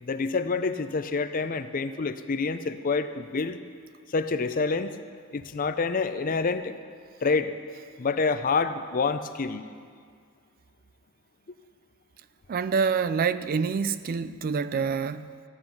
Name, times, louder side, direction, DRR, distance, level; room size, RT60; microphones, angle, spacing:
voice 1, 0.0-3.6 4.1-5.0 5.3-6.8 7.2-7.5 8.0-9.7, left 4 dB, 40° left, 11 dB, 0.5 m, -27 dB
voice 2, 12.5-15.3, right 5 dB, 40° right, 14 dB, 0.3 m, -26 dB
14.0 x 9.7 x 5.8 m, 2.1 s
head